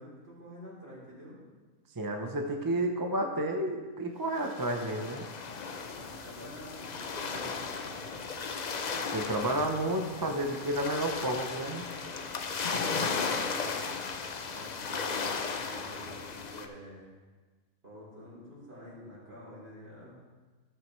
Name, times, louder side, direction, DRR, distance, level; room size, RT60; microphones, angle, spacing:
voice 1, 0.0-1.4 5.9-8.0 12.5-13.7 14.5-17.1 17.8-20.1, equal, 45° right, -6 dB, 3.3 m, -48 dB
voice 2, 2.0-5.2 9.1-11.8, right 1 dB, 25° right, 3 dB, 0.4 m, -31 dB
sound 1, 4.4-16.7, left 5 dB, 60° left, 0.4 m, -36 dB
14.0 x 7.6 x 3.2 m, 1.3 s
omnidirectional pair, 1.5 m